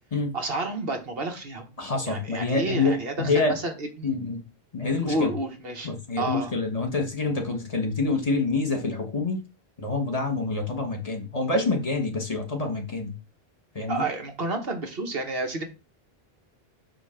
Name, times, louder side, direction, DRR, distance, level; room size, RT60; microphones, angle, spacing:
voice 1, 0.3-1.7 2.1-4.1 5.1-5.9 6.2-6.5 13.9-15.6, right 2 dB, 70° right, 1.5 m, -30 dB
voice 2, 1.8-3.6 4.0-4.4 4.7-5.3 5.8-9.4 9.8-13.1 13.7-14.0, left 3 dB, 35° left, 1.4 m, -26 dB
8.1 x 3.0 x 5.7 m
omnidirectional pair, 1.0 m